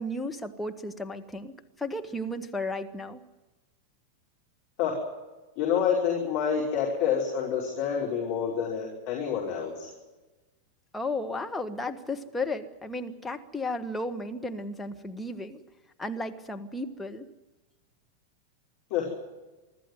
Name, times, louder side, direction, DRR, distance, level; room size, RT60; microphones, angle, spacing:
voice 1, 0.0-3.2 10.9-15.6 16.0-17.3, left 1 dB, 5° left, 4 dB, 1.6 m, -34 dB
voice 2, 5.6-9.9 18.9-19.1, left 7 dB, 45° left, -2 dB, 5.3 m, -28 dB
24.5 x 14.0 x 9.5 m, 1.2 s
figure-of-eight pair, 90°, 0 cm